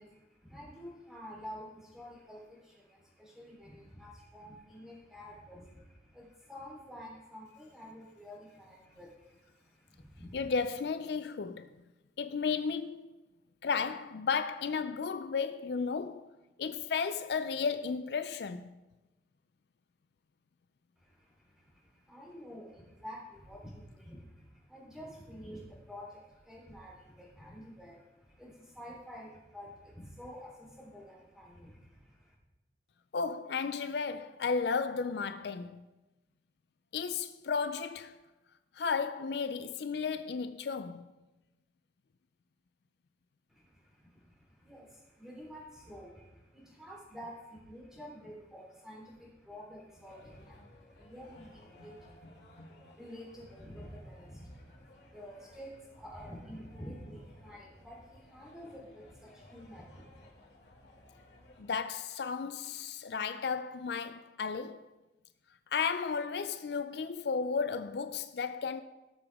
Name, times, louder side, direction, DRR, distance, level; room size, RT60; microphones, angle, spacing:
voice 1, 0.0-10.5 21.0-32.3 43.5-60.4, equal, 5° right, 3.7 m, -49 dB
voice 2, 10.3-11.7 12.2-13.1 13.6-16.3 16.6-18.7 33.1-35.8 36.9-38.2 38.8-41.1 61.6-64.9 65.7-68.8, left 5 dB, 65° left, 0.4 m, -33 dB
sound 1, 50.1-61.7, left 1 dB, 85° left, 2.2 m, -58 dB
18.0 x 6.9 x 3.5 m
head